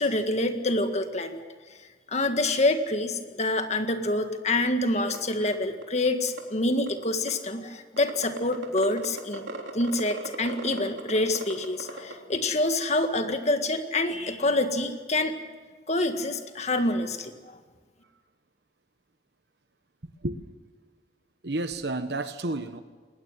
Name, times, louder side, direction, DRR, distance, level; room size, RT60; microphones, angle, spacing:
voice 1, 0.0-1.4 2.1-9.4 9.7-15.4 15.9-17.3, left 2 dB, 35° left, 7 dB, 1.9 m, -26 dB
sound 1, 4.6-4.7 5.1-5.2 5.5-5.6 5.8-6.4 6.9-7.5 8.0-12.1, right 2 dB, 85° right, 3.4 m, -37 dB
voice 2, 21.4-22.8, right 2 dB, 60° right, 10 dB, 1.1 m, -30 dB
21.5 x 19.5 x 7.5 m, 1.5 s
head